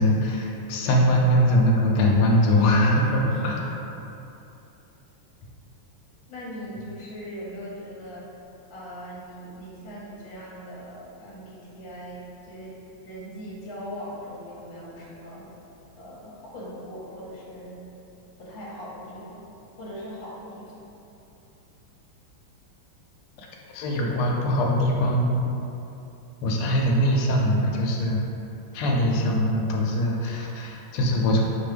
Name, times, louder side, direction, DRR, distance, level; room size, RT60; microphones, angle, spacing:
voice 1, 0.0-3.7 23.7-25.4 26.4-28.2 28.7-31.5, equal, 85° left, -1 dB, 1.5 m, -22 dB
voice 2, 6.3-8.3 8.7-15.5 16.0-17.8 18.4-20.8, equal, 70° left, -6 dB, 1.6 m, -40 dB
5.2 x 2.2 x 3.2 m, 2.9 s
omnidirectional pair, 2.4 m